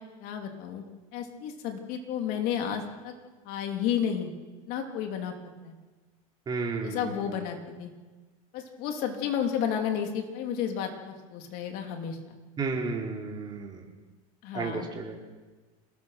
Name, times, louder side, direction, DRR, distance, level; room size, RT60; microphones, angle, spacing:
voice 1, 0.2-0.8 1.1-3.1 3.4-4.3 4.7-5.3 5.6-5.7 6.8-7.9 8.5-12.4 14.4-14.9, left 8 dB, 55° left, 3 dB, 3.4 m, -32 dB
voice 2, 6.5-7.3 12.6-13.8 14.5-15.2, right 4 dB, 25° right, -1 dB, 4.5 m, -33 dB
27.0 x 20.5 x 6.0 m, 1.3 s
supercardioid pair, 130°, 18 cm